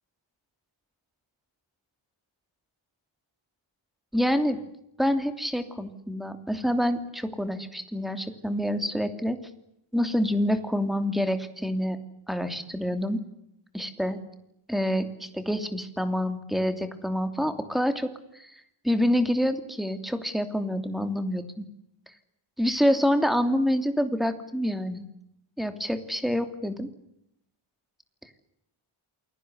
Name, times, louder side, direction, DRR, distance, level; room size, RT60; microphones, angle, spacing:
voice 1, 4.1-4.6 5.0-9.4 9.9-12.0 12.3-13.2 13.7-14.2 14.7-18.5 18.8-21.6 22.6-25.1 25.6-26.9, equal, ahead, 8 dB, 2.9 m, -27 dB
28.5 x 22.0 x 8.2 m, 0.77 s
wide cardioid pair, 130°, 49 cm